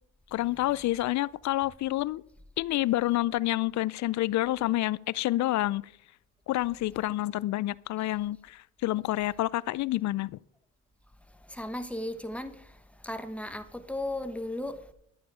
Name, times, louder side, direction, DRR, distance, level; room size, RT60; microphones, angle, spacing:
voice 1, 0.3-2.2 2.6-5.8 6.5-10.4, left 16 dB, 70° left, 0.5 m, -28 dB
voice 2, 11.3-14.9, left 1 dB, 5° left, 1.2 m, -36 dB
11.5 x 9.0 x 4.9 m
cardioid pair, 90°, 30 cm